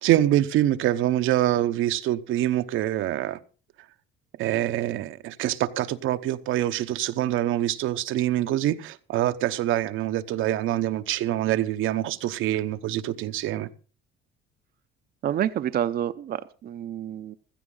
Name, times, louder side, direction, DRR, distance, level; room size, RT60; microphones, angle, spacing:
voice 1, 0.0-3.4 4.4-13.7, right 13 dB, 75° right, 0.9 m, -25 dB
voice 2, 15.2-17.3, right 10 dB, 50° right, 0.7 m, -28 dB
16.0 x 13.5 x 3.9 m
cardioid pair, 115°, 21 cm